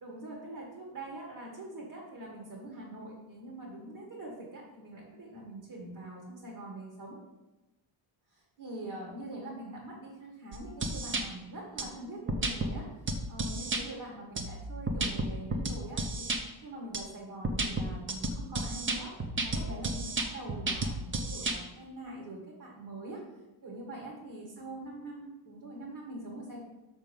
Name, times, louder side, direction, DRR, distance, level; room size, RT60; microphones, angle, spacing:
voice 1, 0.0-7.2 8.3-12.9 13.3-16.3 16.6-23.2 23.6-26.6, right 2 dB, 50° right, -2 dB, 1.9 m, -44 dB
sound 1, 10.5-11.2 11.8-11.9 12.3-12.7 13.1-13.8 14.4-16.4 16.9-17.0 17.4-21.6, right 2 dB, 25° right, 0.8 m, -32 dB
6.8 x 6.0 x 5.3 m, 1.1 s
cardioid pair, 165°, 47 cm